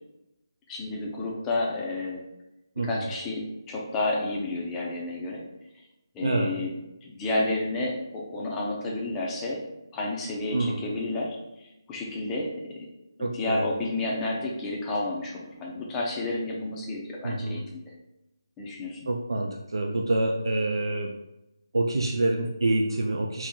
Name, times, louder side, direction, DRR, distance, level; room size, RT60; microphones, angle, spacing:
voice 1, 0.7-2.2 2.8-5.4 6.1-6.7 7.0-9.6 9.9-12.5 13.2-17.8 18.6-19.0, left 2 dB, 10° left, -3 dB, 0.4 m, -31 dB
voice 2, 2.8-3.1 6.2-6.5 10.5-10.8 13.2-13.7 17.2-17.6 19.1-21.1 21.7-23.5, right 2 dB, 85° right, 1 dB, 0.4 m, -27 dB
3.0 x 2.7 x 3.6 m, 0.94 s
figure-of-eight pair, 170°, 2 cm